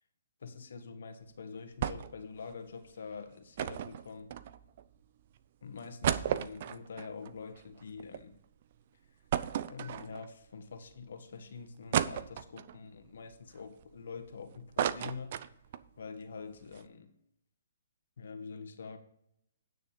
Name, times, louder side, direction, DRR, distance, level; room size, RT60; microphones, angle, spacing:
voice 1, 0.4-4.3 5.6-8.3 9.7-15.5 16.0-17.1 18.2-19.0, left 5 dB, 70° left, 7 dB, 1.7 m, -45 dB
sound 1, 1.8-2.2 2.5-2.6 3.6-4.8 5.4-5.5 5.8-8.2 8.6-8.7 9.3-10.4 11.0-11.1 11.9-12.8 13.3-14.3 14.5-15.9 16.2-16.3 16.6-16.8, right 10 dB, 50° right, 0.5 m, -34 dB
9.9 x 6.5 x 5.2 m, 0.75 s
hypercardioid pair, 140°, 0 cm